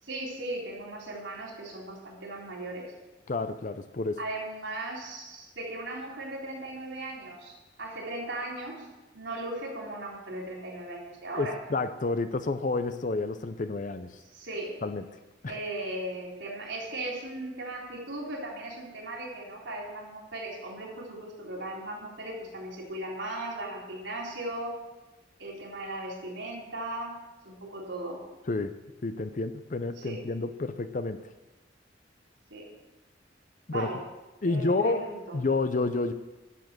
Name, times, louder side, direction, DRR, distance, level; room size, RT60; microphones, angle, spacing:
voice 1, 0.0-2.8 4.2-8.7 9.1-11.5 14.3-14.7 15.5-24.7 25.4-27.2 27.4-28.2 30.0-30.2 32.5-32.6 33.7-34.0 34.4-35.4, right 1 dB, 75° right, -2 dB, 3.8 m, -37 dB
voice 2, 3.3-4.2 11.4-14.1 14.8-15.0 15.4-15.5 28.5-28.7 29.0-31.2 33.7-33.9 34.4-35.0 35.3-36.1, left 3 dB, 40° left, 11 dB, 0.6 m, -29 dB
11.5 x 7.4 x 7.7 m, 1.1 s
head